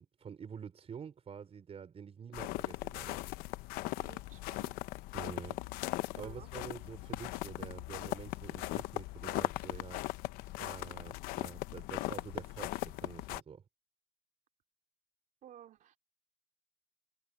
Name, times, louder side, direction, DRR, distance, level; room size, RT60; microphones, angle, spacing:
voice 1, 0.0-3.2 5.1-10.0 10.6-13.6, right 7 dB, 45° right, 4.8 m, -48 dB
sound 1, 2.3-13.4, left 18 dB, 90° left, 0.8 m, -39 dB
voice 2, 4.0-4.8 5.2-5.4 6.1-6.5 15.4-16.0, right 11 dB, 65° right, 3.3 m, -55 dB
cardioid pair, 95°, 15 cm